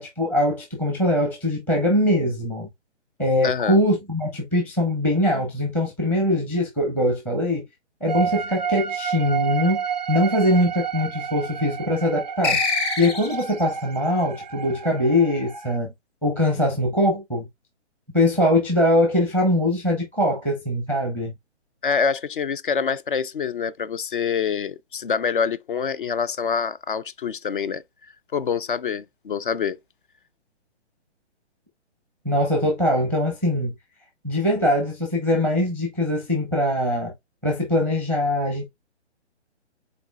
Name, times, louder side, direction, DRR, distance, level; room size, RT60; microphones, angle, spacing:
voice 1, 0.0-2.7 3.2-7.6 8.0-9.8 10.1-12.6 13.0-15.9 16.2-17.5 18.1-21.3 32.2-33.7 34.2-37.1 37.4-38.7, left 1 dB, 5° left, 0.8 m, -22 dB
voice 2, 3.4-3.8 21.8-27.8 28.3-29.8, left 6 dB, 45° left, 0.5 m, -26 dB
sound 1, 8.1-15.8, right 7 dB, 40° right, 0.4 m, -30 dB
sound 2, 12.4-13.6, left 4 dB, 20° left, 1.2 m, -24 dB
5.2 x 4.1 x 2.3 m
hypercardioid pair, 160°, 35 cm